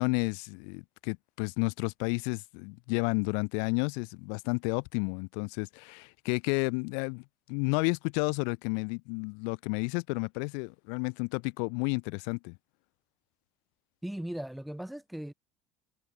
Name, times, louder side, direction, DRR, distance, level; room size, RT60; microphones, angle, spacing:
voice 1, 0.0-12.6, left 40 dB or more, 80° left, 1.9 m, -31 dB
voice 2, 14.0-15.3, right 1 dB, 5° right, 5.0 m, -38 dB
supercardioid pair, 105°, 0 cm